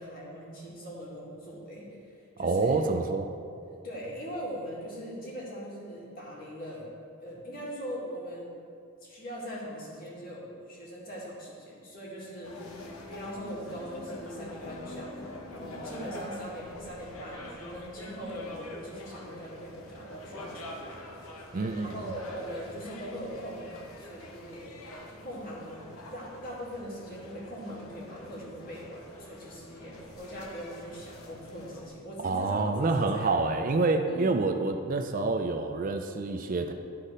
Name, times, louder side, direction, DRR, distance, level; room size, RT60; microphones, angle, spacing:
voice 1, 0.0-2.8 3.8-6.9 7.2-8.5 9.0-21.0 21.3-24.9 25.2-25.8 26.1-33.3 34.0-34.3, equal, 40° left, -5 dB, 2.0 m, -41 dB
voice 2, 2.4-3.3 21.5-21.9 32.2-36.7, right 3 dB, 40° right, 6 dB, 0.4 m, -27 dB
sound 1, 12.4-31.9, left 1 dB, 90° left, 1.0 m, -45 dB
12.0 x 4.2 x 5.0 m, 2.5 s
head